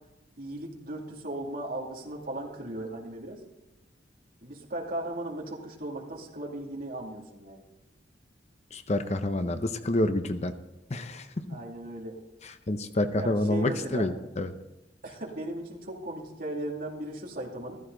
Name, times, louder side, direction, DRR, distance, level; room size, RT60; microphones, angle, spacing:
voice 1, 0.4-3.4 4.4-7.6 11.5-12.2 13.1-14.1 15.0-17.8, right 1 dB, 50° right, 0 dB, 2.5 m, -37 dB
voice 2, 8.7-10.5 10.9-11.6 12.4-14.5, left 1 dB, 40° left, 9 dB, 0.8 m, -28 dB
14.5 x 14.0 x 3.9 m, 1.0 s
head